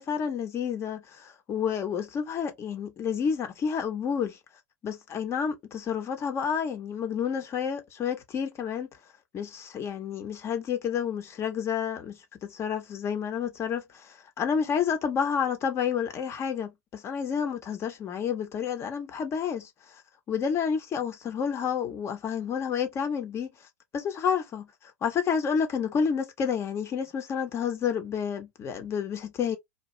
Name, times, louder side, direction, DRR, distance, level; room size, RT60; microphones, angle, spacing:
voice 1, 0.0-4.4 4.8-8.9 9.3-19.7 20.3-23.5 23.9-24.7 25.0-29.6, left 7 dB, 30° left, 0.9 m, -30 dB
2.8 x 2.3 x 3.2 m
hypercardioid pair, 110°, 8 cm